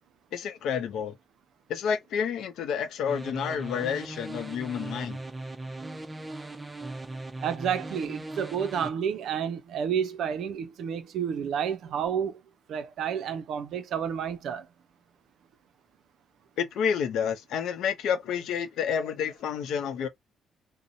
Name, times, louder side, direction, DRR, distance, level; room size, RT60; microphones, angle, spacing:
voice 1, 0.3-1.1 1.7-5.2 16.6-20.1, left 7 dB, 80° left, 0.5 m, -29 dB
sound 1, 3.1-8.9, right 2 dB, 20° right, 0.5 m, -39 dB
voice 2, 7.4-12.4 12.7-14.7, right 8 dB, 75° right, 0.4 m, -30 dB
2.7 x 2.0 x 2.4 m
cardioid pair, 90°, 0 cm